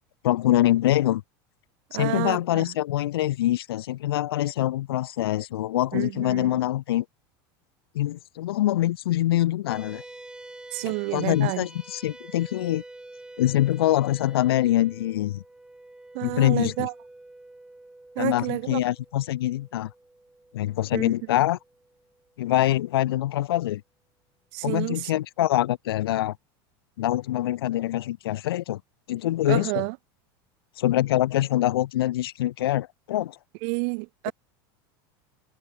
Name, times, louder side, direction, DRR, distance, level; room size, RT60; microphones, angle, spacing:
voice 1, 0.2-1.2 1.9-7.0 7.9-10.0 10.8-12.8 13.4-15.4 16.2-16.9 18.2-19.9 20.5-21.6 22.4-23.8 24.6-26.3 27.0-28.8 29.1-29.7 30.8-33.4, left 14 dB, 90° left, 1.4 m, -24 dB
voice 2, 1.9-2.7 5.9-6.6 10.7-11.7 16.1-16.9 18.2-18.8 20.9-21.1 24.5-25.1 29.5-30.0 33.6-34.3, right 40 dB or more, 65° right, 2.1 m, -30 dB
sound 1, 9.7-22.3, right 2 dB, 5° right, 3.2 m, -47 dB
supercardioid pair, 120°, 12 cm